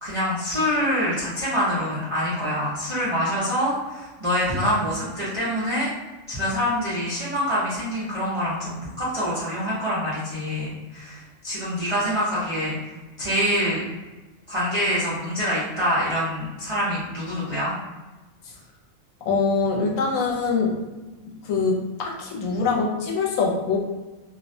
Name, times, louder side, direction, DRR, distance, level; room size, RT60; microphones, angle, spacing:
voice 1, 0.0-5.9 6.3-12.7 13.2-13.8 14.5-17.7, equal, 40° right, -11 dB, 0.5 m, -25 dB
voice 2, 19.2-20.8 21.2-23.8, left 4 dB, 80° left, -1 dB, 1.0 m, -24 dB
2.4 x 2.0 x 2.6 m, 1.2 s
omnidirectional pair, 1.4 m